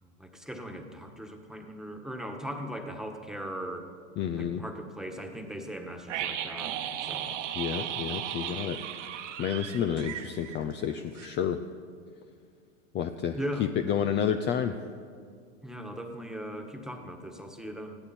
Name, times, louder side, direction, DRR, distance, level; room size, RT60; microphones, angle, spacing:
voice 1, 0.0-3.9 4.4-7.4 8.4-8.6 13.3-13.7 15.6-18.0, equal, ahead, 4 dB, 1.6 m, -39 dB
voice 2, 4.2-4.6 7.5-11.6 12.9-14.7, left 8 dB, 30° left, 8 dB, 0.7 m, -30 dB
sound 1, 6.1-10.9 11.2-11.3, right 10 dB, 70° right, 1.6 m, -36 dB
20.5 x 15.0 x 4.4 m, 2.2 s
hypercardioid pair, 105°, 38 cm